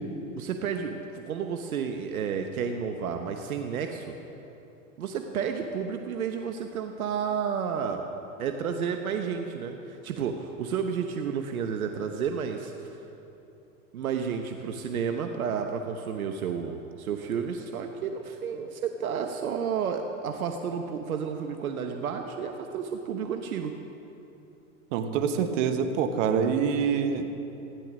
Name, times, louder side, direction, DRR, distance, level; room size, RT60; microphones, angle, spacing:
voice 1, 0.3-4.1 5.0-8.0 8.4-13.0 13.9-23.7, right 6 dB, 80° right, 5 dB, 1.0 m, -31 dB
voice 2, 24.9-27.3, right 6 dB, 60° right, 7 dB, 1.4 m, -26 dB
15.5 x 10.5 x 6.1 m, 2.9 s
hypercardioid pair, 100°, 42 cm